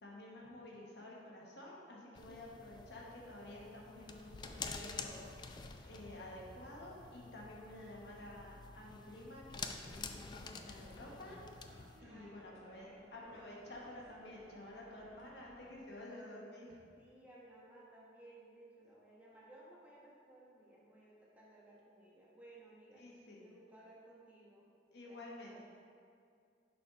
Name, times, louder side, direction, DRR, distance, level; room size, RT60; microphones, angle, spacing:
voice 1, 0.0-11.4 12.0-16.8 22.9-23.4 24.9-25.6, left 1 dB, 70° left, -3 dB, 1.2 m, -51 dB
sound 1, 2.1-12.0, left 5 dB, 25° left, 0.3 m, -49 dB
voice 2, 2.3-2.6 12.0-13.2 17.0-23.0 23.4-24.7 25.0-25.6, right 1 dB, 10° right, -6 dB, 1.1 m, -59 dB
sound 2, 3.0-15.8, equal, 80° right, 0.9 m, -64 dB
6.7 x 3.9 x 4.9 m, 2.3 s
head